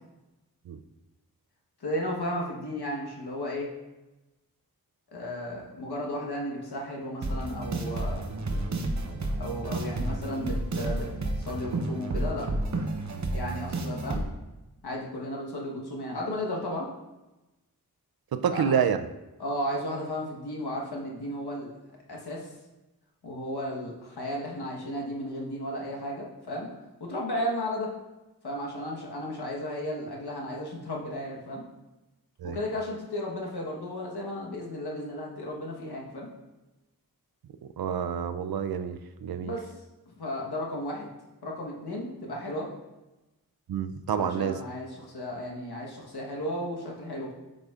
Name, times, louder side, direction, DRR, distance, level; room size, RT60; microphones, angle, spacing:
voice 1, 1.8-3.7 5.1-8.2 9.4-11.1 11.4-12.5 13.3-14.2 14.8-16.9 18.5-18.8 19.4-21.7 22.1-22.5 23.2-26.7 27.0-27.9 28.4-31.6 32.4-36.3 39.4-39.7 40.2-41.1 41.4-42.7 44.1-47.3, left 1 dB, 80° left, -2 dB, 1.2 m, -34 dB
sound 1, 7.2-14.2, right 2 dB, 45° right, 0.8 m, -31 dB
voice 2, 18.3-19.1 32.4-32.6 37.8-39.5 43.7-44.6, right 7 dB, 70° right, 10 dB, 0.5 m, -28 dB
7.8 x 5.1 x 2.4 m, 1.0 s
cardioid pair, 40°, 38 cm